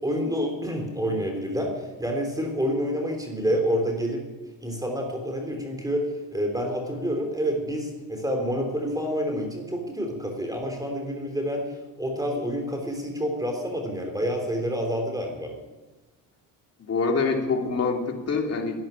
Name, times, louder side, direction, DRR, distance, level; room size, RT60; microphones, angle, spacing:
voice 1, 0.0-4.2 4.6-15.5, equal, 10° right, 3 dB, 3.6 m, -28 dB
voice 2, 16.8-18.8, left 4 dB, 40° left, 1 dB, 3.2 m, -25 dB
12.0 x 10.5 x 10.0 m, 1.1 s
cardioid pair, 105°, 37 cm